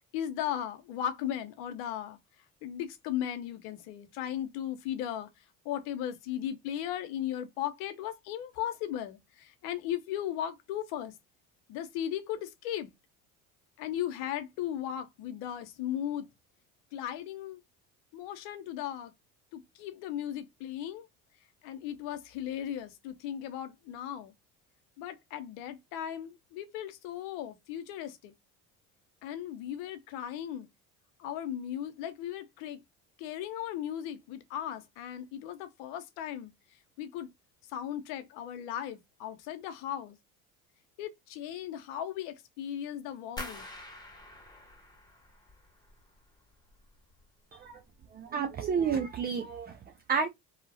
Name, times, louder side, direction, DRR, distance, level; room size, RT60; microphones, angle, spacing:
voice 1, 0.1-2.2 2.6-5.3 5.6-11.1 11.7-12.9 13.8-16.3 16.9-17.6 18.1-19.1 19.5-21.1 21.6-24.3 25.0-28.3 29.2-30.7 31.2-32.8 33.2-36.5 37.0-37.3 37.7-40.2 41.0-43.7, left 10 dB, 75° left, 0.8 m, -37 dB
sound 1, 43.4-46.2 46.5-47.2 47.6-48.0 48.4-48.6, left 1 dB, 10° left, 1.1 m, -46 dB
voice 2, 48.1-49.8 50.1-50.3, right 6 dB, 25° right, 0.4 m, -30 dB
2.8 x 2.4 x 2.6 m
supercardioid pair, 85°, 39 cm